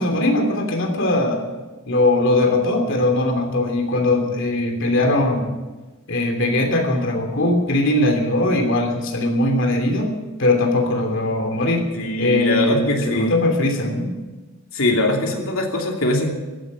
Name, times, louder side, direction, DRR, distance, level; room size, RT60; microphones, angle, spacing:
voice 1, 0.0-1.4 1.9-5.4 6.1-10.1 10.4-11.9 12.2-14.1, left 2 dB, 65° left, 3 dB, 3.1 m, -20 dB
voice 2, 11.9-13.4 14.7-16.4, left 1 dB, 80° left, 1 dB, 2.8 m, -21 dB
15.0 x 9.8 x 8.6 m, 1.2 s
head